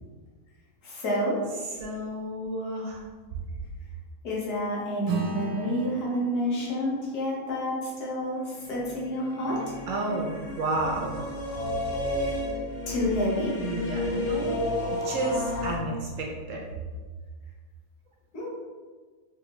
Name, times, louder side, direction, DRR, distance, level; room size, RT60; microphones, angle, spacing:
voice 1, 0.8-1.3 4.2-9.7 12.9-13.5 18.3-18.5, equal, 90° left, -5 dB, 1.6 m, -29 dB
voice 2, 1.7-3.1 9.9-11.2 13.6-16.6, right 2 dB, 65° right, -1 dB, 0.8 m, -31 dB
Acoustic guitar / Strum, 5.1-9.8, right 3 dB, 90° right, 1.2 m, -37 dB
sound 1, 8.5-15.8, left 1 dB, 50° left, 0.8 m, -32 dB
3.4 x 3.3 x 3.0 m, 1.4 s
omnidirectional pair, 1.6 m